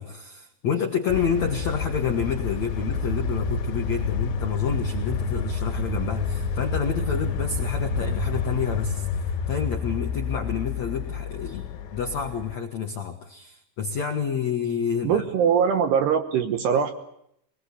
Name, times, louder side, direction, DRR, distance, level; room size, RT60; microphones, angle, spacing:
voice 1, 0.0-15.2, left 7 dB, 85° left, 3 dB, 1.5 m, -29 dB
sound 1, 1.1-12.6, left 5 dB, 70° left, 3.7 m, -29 dB
sound 2, 2.9-10.7, right 1 dB, 90° right, 5.0 m, -35 dB
voice 2, 15.0-16.9, right 7 dB, 70° right, 6 dB, 2.9 m, -22 dB
24.0 x 20.5 x 8.3 m, 0.75 s
omnidirectional pair, 5.7 m